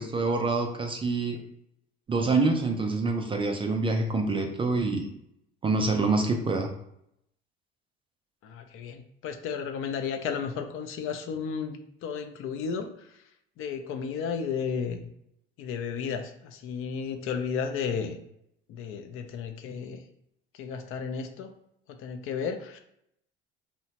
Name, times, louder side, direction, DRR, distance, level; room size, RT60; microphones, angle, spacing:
voice 1, 0.0-1.4 2.1-5.1 5.6-6.7, right 3 dB, 20° right, 4 dB, 0.3 m, -26 dB
voice 2, 8.4-13.1 13.6-15.0 15.6-18.2 18.7-20.0 20.5-21.5 22.0-22.8, left 6 dB, 45° left, 7 dB, 0.4 m, -33 dB
2.8 x 2.1 x 2.8 m, 0.77 s
hypercardioid pair, 65°, 30 cm